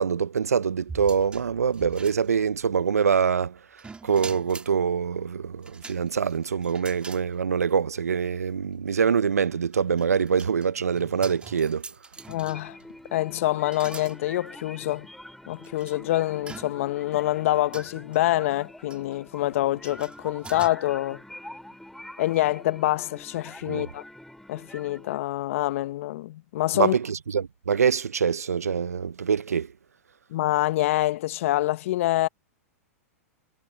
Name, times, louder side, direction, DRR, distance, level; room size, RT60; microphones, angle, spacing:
voice 1, 0.0-3.6 4.0-11.8 23.7-23.9 26.7-29.7, right 6 dB, 85° right, 1.0 m, -24 dB
sound 1, 0.9-2.7 3.8-4.7 5.6-7.3 7.7-7.8 9.3-12.8 13.7-14.2 14.9-15.0 15.6-15.9 16.5-17.0 17.7-18.2 18.9-19.1 19.8-20.7, right 4 dB, 15° right, 4.6 m, -44 dB
sound 2, 12.2-25.2, left 1 dB, ahead, 5.5 m, -45 dB
voice 2, 12.3-12.8 13.1-15.1 15.5-21.2 22.2-24.0 24.5-26.9 30.3-32.3, left 15 dB, 60° left, 1.6 m, -26 dB
hypercardioid pair, 105°, 8 cm